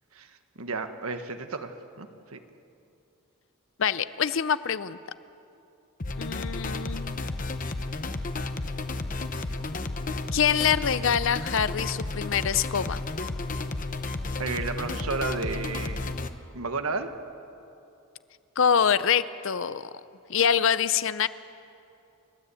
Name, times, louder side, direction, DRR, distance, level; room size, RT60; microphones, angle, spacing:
voice 1, 0.5-2.4 14.4-16.1 16.5-17.1, right 4 dB, 80° right, 8 dB, 1.4 m, -32 dB
voice 2, 3.8-5.0 6.2-7.2 10.3-13.0 18.6-19.8 20.3-21.3, left 7 dB, 60° left, 15 dB, 0.6 m, -25 dB
sound 1, 6.0-16.3, left 2 dB, 40° left, 0.9 m, -32 dB
30.0 x 13.0 x 8.4 m, 2.7 s
head